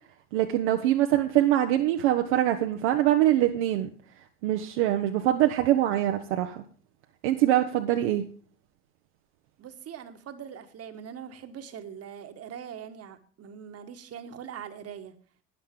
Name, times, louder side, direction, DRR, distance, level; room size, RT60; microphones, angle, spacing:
voice 1, 0.3-3.9 4.4-6.6 7.2-8.3, right 13 dB, 60° right, 1.0 m, -24 dB
voice 2, 9.6-15.1, right 8 dB, 40° right, 1.5 m, -42 dB
13.0 x 9.9 x 3.7 m
figure-of-eight pair, 65°, 39 cm